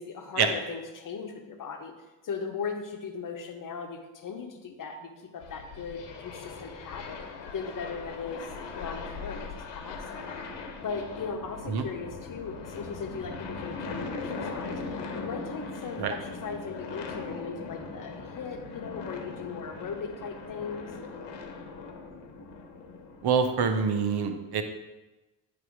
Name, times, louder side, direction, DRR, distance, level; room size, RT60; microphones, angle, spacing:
voice 1, 0.0-1.9 2.2-7.2 7.5-8.4 8.8-10.3 10.6-20.9, left 5 dB, 40° left, 4 dB, 1.2 m, -38 dB
sound 1, 5.4-23.6, left 4 dB, 55° left, 1.2 m, -40 dB
voice 2, 23.2-24.6, right 6 dB, 50° right, 7 dB, 0.9 m, -25 dB
9.2 x 3.4 x 4.7 m, 1.1 s
supercardioid pair, 75°, 49 cm